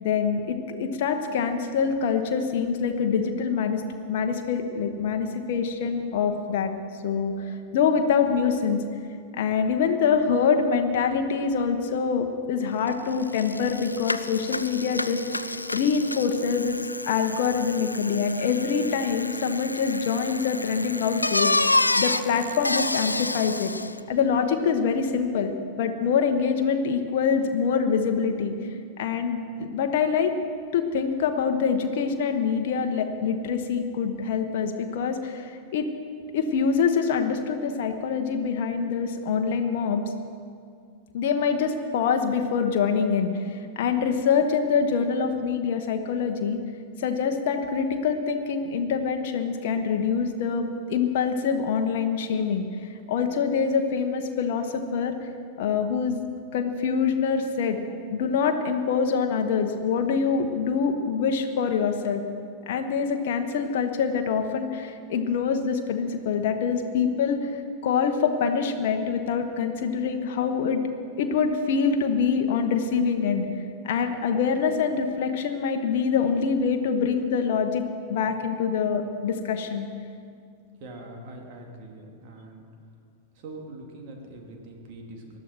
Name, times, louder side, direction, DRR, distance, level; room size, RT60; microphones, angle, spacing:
voice 1, 0.0-3.8 4.1-6.7 7.0-8.8 9.3-16.8 17.0-23.7 24.1-25.5 25.8-30.3 30.7-35.9 36.3-40.0 41.1-46.6 47.0-55.3 55.6-56.2 56.5-57.8 58.1-62.2 62.7-70.8 71.2-73.5 73.8-79.9, left 6 dB, 55° left, 5 dB, 1.1 m, -25 dB
Bicycle, 12.9-13.0 13.2-24.0, left 2 dB, 85° left, 0.4 m, -29 dB
voice 2, 80.8-82.7 83.3-85.4, right 2 dB, 45° right, 1 dB, 2.8 m, -43 dB
20.0 x 12.5 x 4.5 m, 2.2 s
figure-of-eight pair, 90°, 0 cm